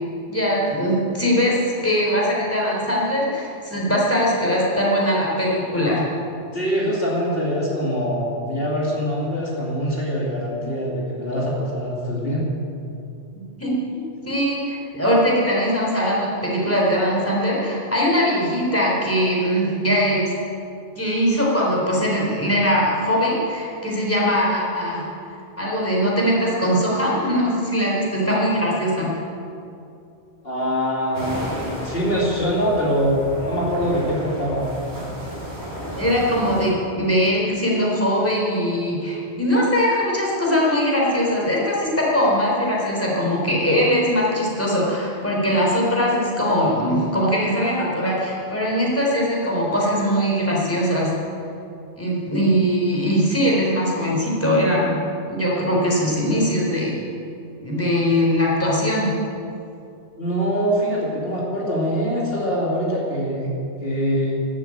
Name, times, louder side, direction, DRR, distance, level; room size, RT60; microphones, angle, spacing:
voice 1, 0.3-6.0 13.3-20.3 21.0-25.1 25.6-29.1 35.9-51.2 52.0-55.0 55.3-57.0 57.6-59.1, equal, 10° left, -4 dB, 3.9 m, -21 dB
voice 2, 6.5-12.5 30.4-34.7 60.2-63.5 63.8-64.4, equal, 60° left, -4 dB, 3.0 m, -23 dB
sound 1, 31.1-36.7, equal, 15° right, 4.6 m, -33 dB
13.0 x 12.5 x 8.8 m, 2.6 s
omnidirectional pair, 1.1 m